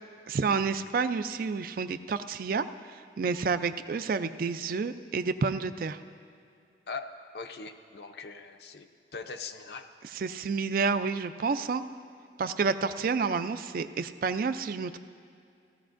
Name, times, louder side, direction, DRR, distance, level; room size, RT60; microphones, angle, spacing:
voice 1, 0.3-2.6 3.2-6.0 10.1-11.8 12.4-15.0, right 5 dB, 50° right, 11 dB, 0.4 m, -29 dB
voice 2, 6.9-9.9, left 4 dB, 60° left, 6 dB, 0.5 m, -41 dB
17.0 x 14.0 x 2.5 m, 2.4 s
head